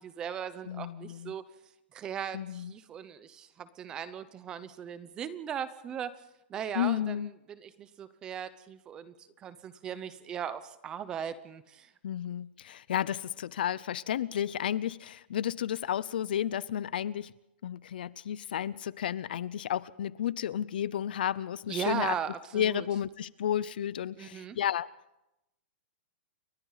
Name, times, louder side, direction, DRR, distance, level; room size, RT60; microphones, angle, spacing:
voice 1, 0.0-1.4 1.9-6.2 6.5-11.9 21.7-22.9 24.2-24.6, right 8 dB, 15° right, 0.8 m, -38 dB
voice 2, 0.7-1.3 2.3-2.7 6.7-7.3 12.0-17.3 17.6-22.1 22.5-24.9, left 10 dB, 55° left, 0.7 m, -32 dB
30.0 x 22.5 x 4.1 m
supercardioid pair, 180°, 6 cm